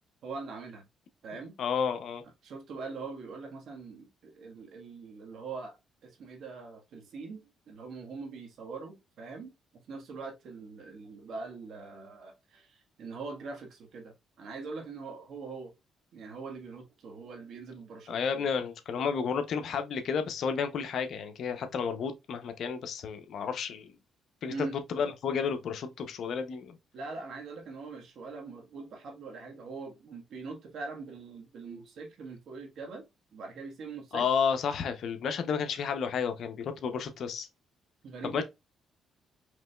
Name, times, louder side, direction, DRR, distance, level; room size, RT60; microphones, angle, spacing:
voice 1, 0.2-0.9 1.2-1.6 2.4-5.8 6.0-15.7 16.1-18.5 24.5-24.8 26.9-33.0 33.3-34.2 38.0-38.4, right 4 dB, 70° right, 1.6 m, -42 dB
voice 2, 1.6-2.2 18.1-23.9 24.4-26.8 34.1-37.5 38.2-38.4, left 6 dB, 65° left, 0.8 m, -31 dB
4.9 x 3.2 x 2.4 m
cardioid pair, 90°, 0 cm